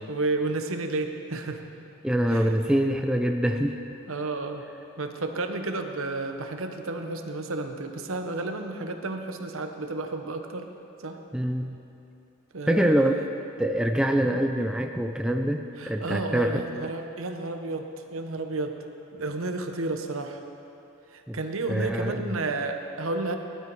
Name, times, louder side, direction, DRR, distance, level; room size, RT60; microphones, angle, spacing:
voice 1, 0.1-1.6 2.3-2.7 4.1-4.6 5.0-10.7 11.0-11.2 12.5-13.3 15.8-17.8 18.1-18.7 19.1-20.4 21.1-23.4, right 2 dB, 70° right, 6 dB, 1.0 m, -31 dB
voice 2, 2.0-3.8 11.3-11.8 12.7-13.1 13.6-16.6 21.3-21.4 21.7-22.3, equal, 5° right, 4 dB, 0.4 m, -25 dB
17.5 x 12.0 x 4.7 m, 2.8 s
head